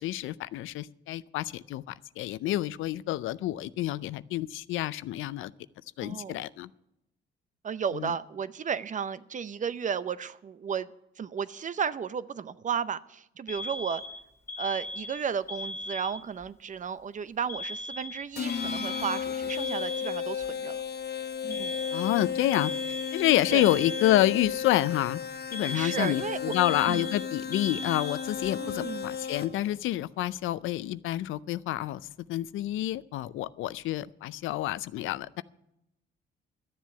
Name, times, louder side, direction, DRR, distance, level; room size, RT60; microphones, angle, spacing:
voice 1, 0.0-1.8 2.2-5.5 6.0-6.7 7.9-8.1 21.9-22.7 23.1-25.2 25.5-32.0 32.3-35.4, left 14 dB, 80° left, 17 dB, 0.5 m, -28 dB
voice 2, 6.0-6.4 7.6-10.9 11.2-14.0 14.6-20.8 21.4-21.8 23.5-23.6 25.7-26.5 26.9-27.1 28.6-29.1, right 7 dB, 40° right, 15 dB, 0.6 m, -33 dB
Alarm, 13.5-16.4 17.5-20.5 21.5-24.5 25.5-28.5, left 1 dB, 15° left, 2.2 m, -38 dB
sound 1, 18.4-29.7, left 7 dB, 55° left, 0.9 m, -34 dB
12.5 x 7.4 x 9.2 m, 0.85 s
cardioid pair, 90°, 20 cm